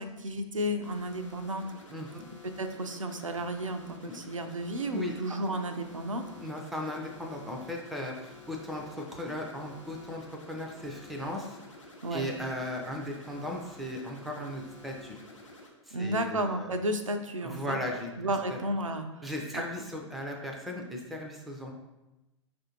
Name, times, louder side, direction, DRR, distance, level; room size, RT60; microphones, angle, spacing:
voice 1, 0.0-1.7 2.6-6.2 12.0-12.3 15.9-17.8 18.2-19.1 19.5-19.6, right 1 dB, 85° right, 6 dB, 0.4 m, -32 dB
sound 1, 0.8-15.7, left 3 dB, 85° left, 0.9 m, -51 dB
voice 2, 1.9-2.2 4.0-4.1 4.9-5.1 6.4-11.6 12.1-15.2 15.9-16.7 17.4-18.6 19.2-21.7, left 1 dB, ahead, 1 dB, 0.4 m, -37 dB
4.7 x 2.5 x 2.9 m, 1.0 s
figure-of-eight pair, 105°, 16 cm